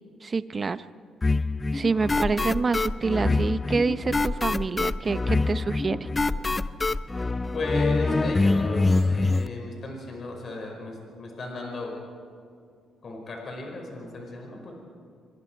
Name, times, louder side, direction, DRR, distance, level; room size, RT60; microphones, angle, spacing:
voice 1, 0.2-0.9 1.7-6.1, right 4 dB, 35° right, 14 dB, 0.7 m, -27 dB
sound 1, 1.2-9.5, left 3 dB, 25° left, 0.5 m, -25 dB
voice 2, 7.5-11.9 13.0-14.7, left 3 dB, 45° left, 1 dB, 5.1 m, -35 dB
26.0 x 21.5 x 4.6 m, 2.3 s
cardioid pair, 90°, 0 cm